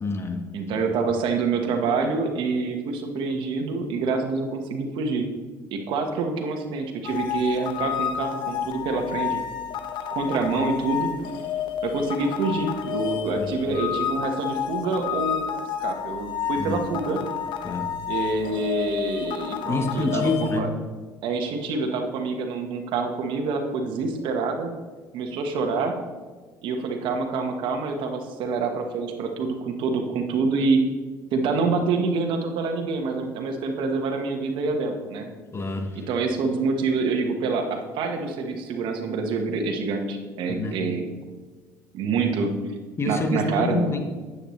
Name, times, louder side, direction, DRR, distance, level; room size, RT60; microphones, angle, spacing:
voice 1, 0.0-0.4 13.4-13.5 16.6-16.8 17.6-17.9 19.7-20.7 35.5-36.0 40.5-40.8 43.0-44.0, left 2 dB, 30° left, 6 dB, 1.2 m, -27 dB
voice 2, 0.5-5.3 5.7-9.4 10.1-11.1 11.8-15.4 15.8-17.2 18.1-20.7 21.2-24.7 25.1-25.9 26.6-30.8 31.3-35.3 35.9-41.0 41.9-42.5 43.1-43.9, right 4 dB, 70° right, 4 dB, 1.3 m, -26 dB
sound 1, 7.0-20.6, left 9 dB, 65° left, 0.8 m, -30 dB
10.0 x 8.2 x 3.2 m, 1.4 s
supercardioid pair, 85°, 9 cm